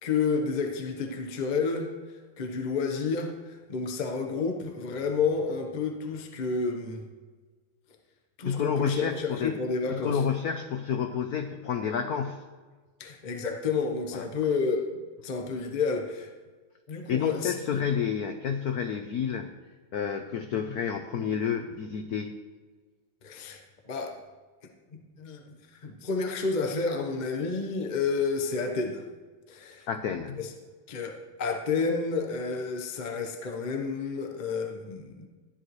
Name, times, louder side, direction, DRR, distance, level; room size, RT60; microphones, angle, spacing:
voice 1, 0.0-7.0 8.4-10.2 13.0-16.3 16.9-17.8 23.2-23.6 23.9-24.2 24.9-29.0 29.5-29.9 30.4-30.5 30.9-35.3, left 4 dB, 45° left, 3 dB, 0.6 m, -30 dB
voice 2, 8.4-9.6 9.9-12.4 14.1-14.2 17.1-19.5 19.9-22.4 29.9-30.4, left 7 dB, 80° left, 7 dB, 0.8 m, -30 dB
13.0 x 10.5 x 3.2 m, 1.4 s
omnidirectional pair, 2.4 m